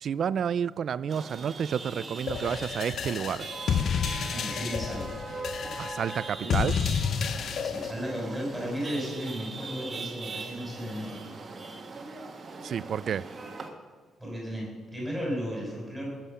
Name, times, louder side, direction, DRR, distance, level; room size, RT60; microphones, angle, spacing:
voice 1, 0.0-3.5 5.8-6.8 12.6-13.3, right 8 dB, 45° right, 0.3 m, -30 dB
Chatter / Vehicle horn car horn honking / Traffic noise roadway noise, 1.1-13.7, right 3 dB, 25° right, 1.4 m, -41 dB
sound 1, 2.3-7.9, left 7 dB, 45° left, 0.5 m, -30 dB
voice 2, 4.2-5.2 6.4-6.5 7.6-11.3 14.2-16.1, equal, 5° left, 5.9 m, -34 dB
20.0 x 7.6 x 6.8 m
cardioid pair, 175°, 0 cm